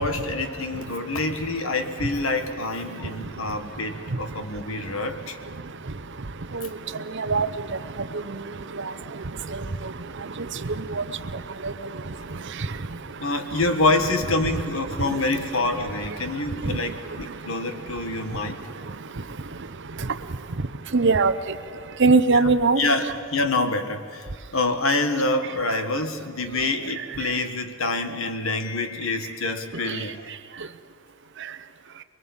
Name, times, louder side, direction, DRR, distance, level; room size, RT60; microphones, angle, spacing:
voice 1, 0.0-5.4 13.2-18.6 22.3-22.5 22.8-24.3 24.5-30.2, left 2 dB, 65° left, 7 dB, 1.6 m, -26 dB
voice 2, 7.1-7.5 8.8-8.9 9.5-9.6 10.7-11.0 11.6-11.7 15.0-15.2 16.7-16.8 20.9-21.3 22.0-22.8, right 3 dB, 55° right, 11 dB, 0.9 m, -20 dB
23.5 x 23.0 x 7.3 m, 2.2 s
head